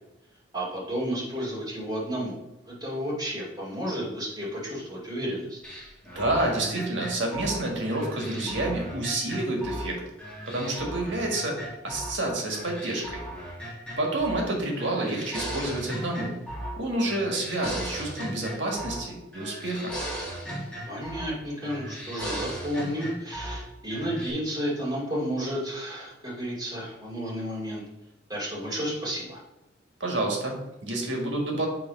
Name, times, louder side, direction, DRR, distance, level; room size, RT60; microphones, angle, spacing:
voice 1, 0.5-2.4 2.6-5.6 20.9-27.8 28.3-29.4, equal, 20° right, -5 dB, 2.4 m, -32 dB
sound 1, 5.6-9.9 10.2-12.2 12.5-14.5 14.8-16.8 17.0-19.1 19.3-21.3 21.6-23.6 23.9-24.3, right 1 dB, 5° left, 1.7 m, -37 dB
voice 2, 6.1-10.0 10.5-11.6 11.8-13.2 14.0-16.3 16.8-19.9 30.0-31.7, right 2 dB, 75° right, 0 dB, 1.6 m, -29 dB
6.8 x 3.3 x 5.1 m, 0.93 s
head